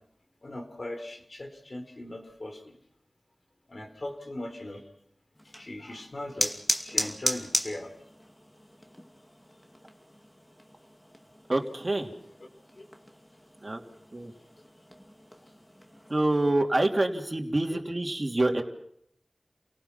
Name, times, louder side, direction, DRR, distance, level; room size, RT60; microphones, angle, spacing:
voice 1, 0.4-2.8 3.7-4.8 5.6-6.6 6.8-7.9 12.4-12.5 12.8-12.9 17.7-17.8, left 1 dB, 60° left, 5 dB, 4.4 m, -39 dB
sound 1, 5.4-16.5, equal, 10° left, 2.5 m, -37 dB
voice 2, 11.5-12.1 13.6-13.8 14.1-14.3 16.1-18.6, right 2 dB, 45° right, 2 dB, 3.1 m, -26 dB
29.0 x 18.5 x 5.9 m, 0.68 s
wide cardioid pair, 40°, 0 cm